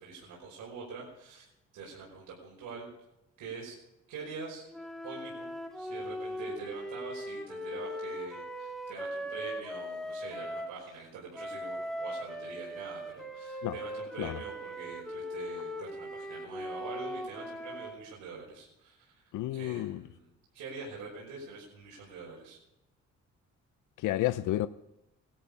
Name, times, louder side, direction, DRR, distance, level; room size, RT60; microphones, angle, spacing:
voice 1, 0.0-2.9 3.4-3.8 4.1-4.6 5.0-20.3 20.5-22.6, right 4 dB, 80° right, 5.5 m, -45 dB
sound 1, 4.7-10.8 11.3-18.0, equal, ahead, 3.0 m, -39 dB
voice 2, 19.3-20.0 24.0-24.7, left 15 dB, 85° left, 0.7 m, -31 dB
19.5 x 13.5 x 5.5 m
cardioid pair, 90°, 30 cm